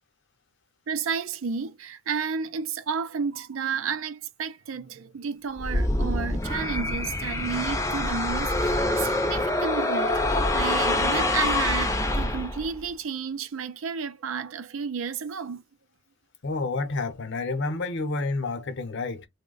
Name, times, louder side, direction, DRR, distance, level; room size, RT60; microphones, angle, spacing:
voice 1, 0.9-15.6, right 6 dB, 80° right, 0.5 m, -32 dB
sound 1, 5.6-12.8, left 1 dB, 15° left, 0.5 m, -25 dB
voice 2, 16.4-19.3, left 3 dB, 60° left, 0.7 m, -29 dB
3.1 x 2.1 x 3.7 m
head